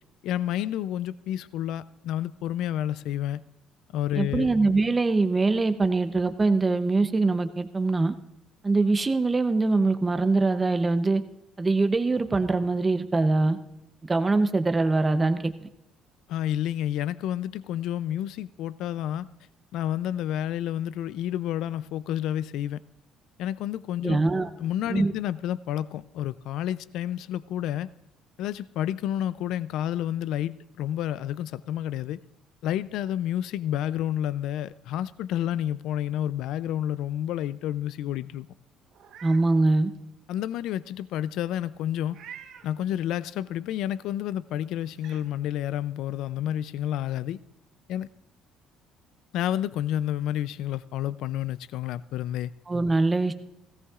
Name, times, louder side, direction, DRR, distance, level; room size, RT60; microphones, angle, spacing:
voice 1, 0.2-3.4 3.9-4.5 16.3-19.3 19.7-22.8 23.4-24.2 24.6-27.9 28.4-32.2 32.6-38.5 40.3-42.2 42.6-47.4 47.9-48.1 49.3-52.5, left 11 dB, 65° left, 16 dB, 0.4 m, -30 dB
voice 2, 4.2-8.1 8.6-11.2 11.6-13.6 14.1-15.4 24.0-24.5 24.9-25.1 39.2-39.9 52.7-53.3, right 3 dB, 15° right, 9 dB, 0.6 m, -23 dB
Meow, 38.9-39.4 39.9-40.0 42.1-42.7 44.3-44.4 44.9-45.2, right 8 dB, 55° right, 1.1 m, -46 dB
18.0 x 17.0 x 2.4 m, 0.88 s
cardioid pair, 180°, 0 cm